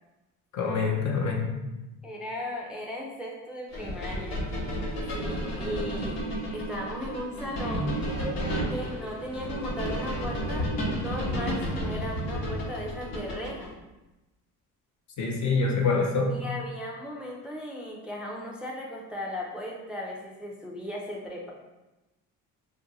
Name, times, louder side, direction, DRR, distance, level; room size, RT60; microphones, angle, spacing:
voice 1, 0.5-1.5 15.2-16.4, left 4 dB, 55° left, 1 dB, 0.7 m, -25 dB
voice 2, 2.0-4.4 5.1-6.2 6.5-8.0 8.7-10.7 10.9-13.7 16.3-21.5, left 1 dB, 5° right, -3 dB, 0.5 m, -36 dB
sound 1, 3.7-13.7, equal, 85° left, 1.0 m, -32 dB
2.6 x 2.2 x 3.9 m, 1.0 s
cardioid pair, 95°, 35 cm